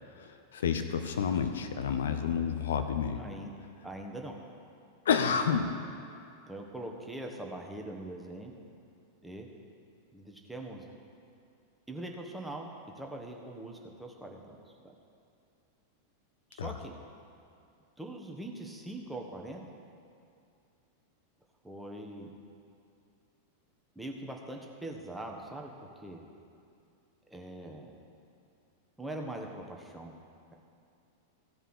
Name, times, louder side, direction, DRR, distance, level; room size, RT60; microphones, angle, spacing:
voice 1, 0.2-3.2 5.1-5.7 16.6-16.7, left 7 dB, 65° left, 7 dB, 0.6 m, -29 dB
voice 2, 3.2-3.5 3.8-4.4 5.3-5.4 6.5-8.5 9.2-9.5 10.1-10.8 11.9-12.7 12.9-14.9 16.5-17.0 18.0-19.6 21.6-22.3 23.9-26.2 27.3-27.9 29.0-30.1, right 1 dB, 5° right, 0 dB, 1.3 m, -42 dB
16.0 x 5.4 x 6.7 m, 2.5 s
figure-of-eight pair, 90°, 0 cm